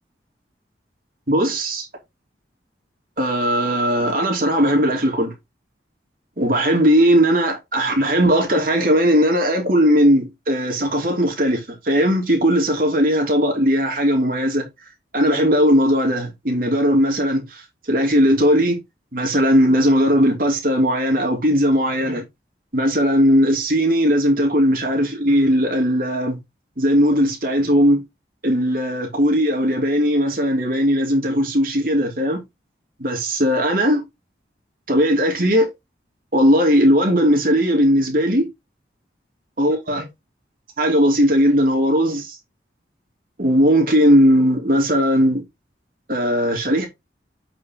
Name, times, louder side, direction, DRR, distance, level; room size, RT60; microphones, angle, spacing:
voice 1, 1.3-1.9 3.2-5.3 6.4-14.6 15.1-17.6 17.9-18.8 19.1-22.2 22.7-26.4 26.8-28.0 28.4-32.4 33.0-34.0 34.9-35.7 36.3-38.5 39.6-40.1 40.8-42.3 43.4-45.4 46.1-46.9, equal, 50° right, 2.9 m, -18 dB
8.5 x 5.5 x 3.0 m
head